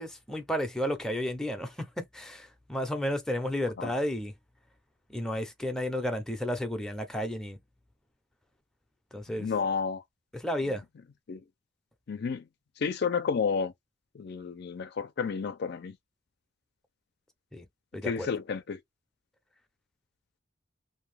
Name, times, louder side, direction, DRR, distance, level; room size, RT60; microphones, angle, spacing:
voice 1, 0.0-4.3 5.1-7.6 9.1-9.5 10.3-10.8 17.5-17.6 17.9-18.3, equal, 5° left, 0.6 m, -32 dB
voice 2, 9.4-10.0 11.3-11.4 12.1-12.4 12.8-13.7 14.1-16.0 18.0-18.8, left 5 dB, 60° left, 0.4 m, -31 dB
2.7 x 2.2 x 3.2 m
head